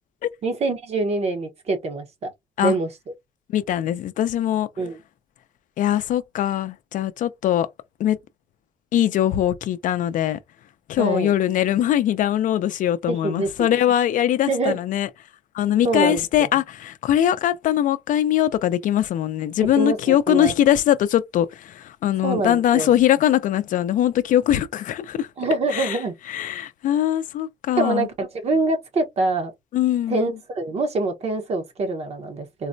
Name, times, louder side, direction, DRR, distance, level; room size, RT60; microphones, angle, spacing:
voice 1, 0.4-2.3 2.6-2.9 4.8-5.0 11.0-11.3 13.1-13.8 14.5-14.8 15.8-16.2 19.8-20.5 22.2-22.9 25.4-26.1 27.8-29.5 30.1-32.7, right 3 dB, 50° right, 0.9 m, -25 dB
voice 2, 3.5-4.7 5.8-7.7 8.0-8.2 8.9-10.4 10.9-15.1 15.5-25.3 25.7-26.0 26.3-28.1 29.7-30.3, left 11 dB, 65° left, 0.4 m, -21 dB
3.9 x 2.1 x 2.6 m
cardioid pair, 130°, 14 cm